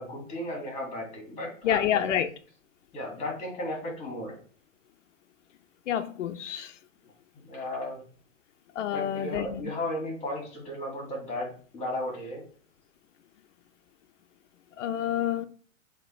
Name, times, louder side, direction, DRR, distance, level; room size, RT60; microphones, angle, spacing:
voice 1, 0.0-2.2 2.9-4.4 7.3-8.0 8.9-12.4, left 1 dB, 15° left, 2.3 m, -35 dB
voice 2, 1.6-2.3 5.9-6.8 8.7-9.6 14.8-15.5, left 10 dB, 65° left, 0.7 m, -28 dB
7.4 x 3.0 x 4.4 m
hypercardioid pair, 160°, 40 cm